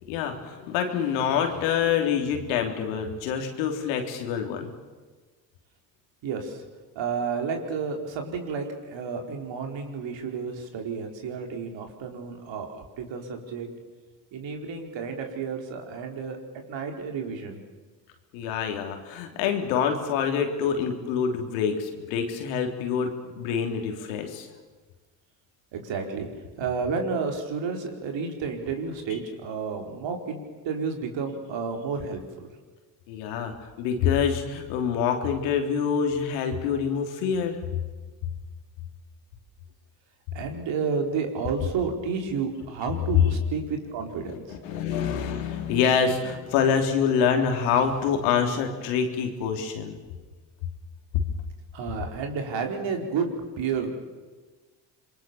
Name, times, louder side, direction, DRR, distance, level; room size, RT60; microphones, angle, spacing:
voice 1, 0.0-4.7 18.3-24.5 33.1-37.6 44.2-50.0, left 7 dB, 80° left, 4 dB, 3.7 m, -26 dB
voice 2, 6.2-6.6 6.9-13.7 14.3-16.4 16.7-17.6 25.7-26.3 26.6-32.5 40.3-44.6 51.7-53.9, right 5 dB, 60° right, 4 dB, 4.9 m, -31 dB
27.0 x 22.5 x 7.1 m, 1.4 s
hypercardioid pair, 65°, 49 cm